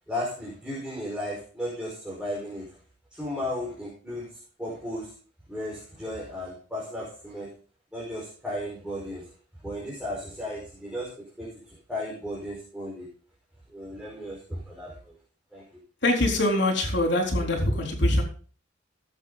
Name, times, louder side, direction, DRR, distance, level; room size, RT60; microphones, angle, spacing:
voice 1, 0.1-2.7 3.1-4.3 4.6-5.1 5.5-7.5 7.9-9.2 9.6-13.1 13.7-15.1 15.5-15.6, left 1 dB, 5° right, -5 dB, 5.3 m, -35 dB
voice 2, 16.0-18.2, left 1 dB, 65° left, 2 dB, 4.0 m, -23 dB
18.0 x 8.2 x 4.1 m, 0.40 s
head